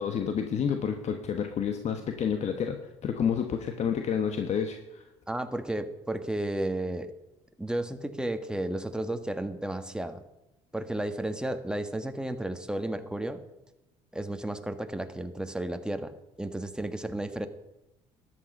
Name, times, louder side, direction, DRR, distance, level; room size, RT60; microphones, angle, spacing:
voice 1, 0.0-5.0, left 7 dB, 55° left, 6 dB, 1.3 m, -29 dB
voice 2, 5.3-7.1 7.6-10.2 10.7-13.4 14.1-16.1 16.4-17.5, right 1 dB, 5° right, 8 dB, 1.6 m, -33 dB
13.5 x 11.0 x 5.5 m, 0.95 s
supercardioid pair, 65°, 14 cm